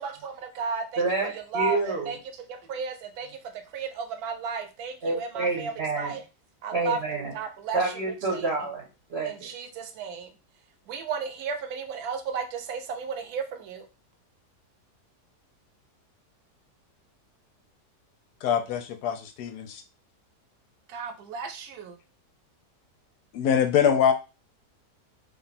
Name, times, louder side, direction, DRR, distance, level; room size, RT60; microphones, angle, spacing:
voice 1, 0.0-1.0 1.3-6.2 6.6-7.9 8.3-8.5 9.2-10.3 10.9-13.8 20.9-22.0, right 5 dB, 70° right, 6 dB, 1.1 m, -34 dB
voice 2, 1.0-2.1 5.0-6.1 6.7-7.3 7.7-9.5, right 3 dB, 50° right, -1 dB, 0.9 m, -28 dB
voice 3, 18.4-19.8 23.3-24.1, left 8 dB, 75° left, 8 dB, 1.1 m, -24 dB
3.4 x 2.4 x 4.1 m, 0.30 s
omnidirectional pair, 1.8 m